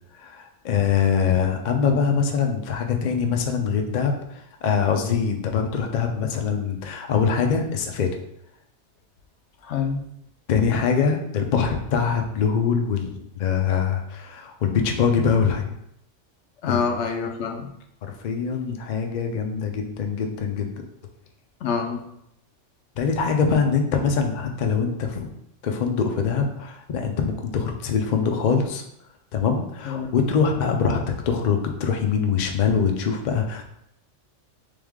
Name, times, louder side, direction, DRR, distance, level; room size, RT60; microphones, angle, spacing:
voice 1, 0.2-8.1 10.5-15.6 16.7-17.1 18.0-20.8 23.0-25.3 25.6-28.8 29.3-33.7, left 6 dB, 55° left, 3 dB, 0.5 m, -23 dB
voice 2, 9.6-10.0 16.6-17.7 21.6-22.0 29.8-30.1, left 6 dB, 70° left, 4 dB, 0.9 m, -26 dB
3.5 x 3.4 x 3.5 m, 0.77 s
omnidirectional pair, 1.3 m